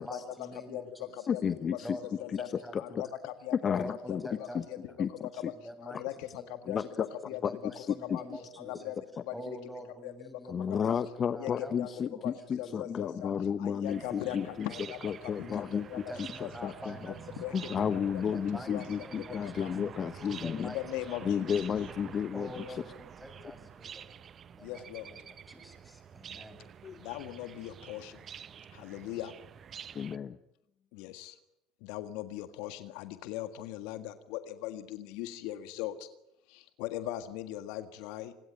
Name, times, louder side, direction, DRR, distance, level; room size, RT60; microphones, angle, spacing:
voice 1, 0.0-1.3 1.8-3.1 3.6-4.9 5.5-6.0 6.4-6.9 7.3-8.9 9.3-11.0 11.2-12.3 12.6-13.2 14.0-14.1 14.6-14.9 15.3-17.6 18.2-19.6 20.3-21.2 21.6-21.7 22.3-24.1 24.5-26.6, equal, ahead, 8 dB, 7.3 m, -47 dB
voice 2, 1.3-2.0 2.3-2.4 2.7-2.8 3.6-4.2 4.5-4.6 5.0-5.5 6.7-6.8 7.4-8.2 10.5-14.7 15.0-15.9 16.2-17.0 17.5-20.7 21.2-22.5 26.8-27.0 29.9-30.3, left 7 dB, 40° left, 13 dB, 1.0 m, -32 dB
voice 3, 2.8-3.6 4.1-4.2 4.7-4.8 5.8-6.3 6.7-7.4 8.0-8.2 8.6-9.0 9.3-9.4 10.0-10.1 10.8-10.9 11.4-11.9 12.2-12.3 12.6-13.3 13.6-15.0 15.4-15.5 15.7-16.0 16.4-16.7 17.4-17.5 18.1-18.2 18.5-19.1 19.6-19.7 20.6-21.6 24.6-25.1 27.0-28.1 28.8-29.3 31.0-31.3 31.9-35.9 36.8-38.3, left 14 dB, 70° left, 10 dB, 1.7 m, -39 dB
sound 1, 13.8-30.2, right 8 dB, 40° right, 0.9 m, -48 dB
26.5 x 20.5 x 9.1 m, 0.81 s
hypercardioid pair, 70°, 0 cm